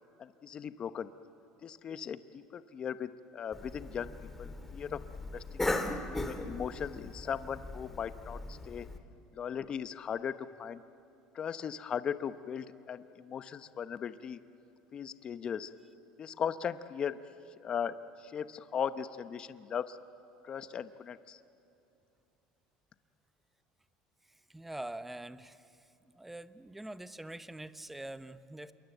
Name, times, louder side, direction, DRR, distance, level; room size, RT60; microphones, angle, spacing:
voice 1, 0.2-1.1 1.6-4.1 4.4-5.0 5.3-5.6 6.2-8.9 9.3-10.8 11.3-14.4 14.9-15.7 16.2-17.2 17.6-20.0 20.4-21.4, left 8 dB, 40° left, 12 dB, 0.9 m, -38 dB
Cough, 3.5-9.0, left 2 dB, 10° left, 2.2 m, -38 dB
voice 2, 24.5-25.9 26.1-28.7, right 1 dB, 5° right, 13 dB, 0.9 m, -44 dB
27.5 x 22.5 x 8.0 m, 2.8 s
supercardioid pair, 105°, 3 cm